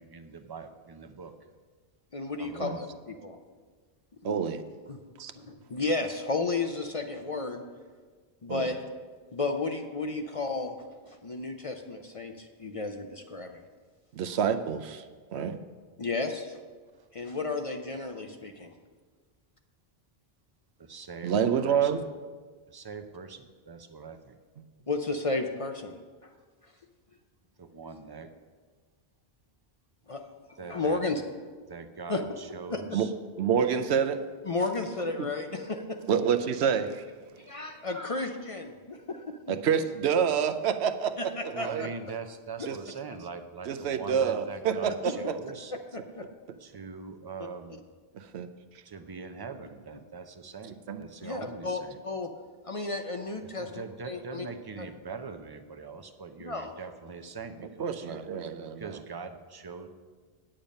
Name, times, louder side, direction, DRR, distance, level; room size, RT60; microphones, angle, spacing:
voice 1, 0.0-1.3 2.4-2.8 20.8-21.3 21.6-22.0 22.7-24.4 27.6-28.3 30.6-31.0 31.7-33.1 41.5-45.7 46.6-47.8 48.8-52.0 53.6-58.3 58.8-59.9, right 5 dB, 30° right, 7 dB, 0.5 m, -42 dB
voice 2, 2.1-3.4 4.2-4.4 4.9-5.0 5.4-7.6 8.4-8.8 9.3-10.8 11.0-13.6 16.0-16.6 17.1-18.7 24.9-26.0 26.2-26.3 30.1-30.2 30.5-31.2 32.1-32.2 32.7-32.8 34.4-36.0 37.4-39.4 41.2-41.9 45.0-45.3 45.7-46.2 51.2-52.3 52.6-54.5 54.8-54.9 56.4-56.8, left 3 dB, 40° left, 5 dB, 0.6 m, -33 dB
voice 3, 4.2-4.6 5.2-5.3 8.5-8.7 14.1-15.0 15.3-15.6 21.2-22.0 32.9-33.1 33.4-34.2 35.2-35.3 36.1-37.0 39.5-41.9 42.6-42.8 43.7-45.3 48.1-48.5 50.9-51.0 57.8-59.0, right 7 dB, 85° right, 9 dB, 0.9 m, -28 dB
8.9 x 8.7 x 5.3 m, 1.5 s
omnidirectional pair, 1.1 m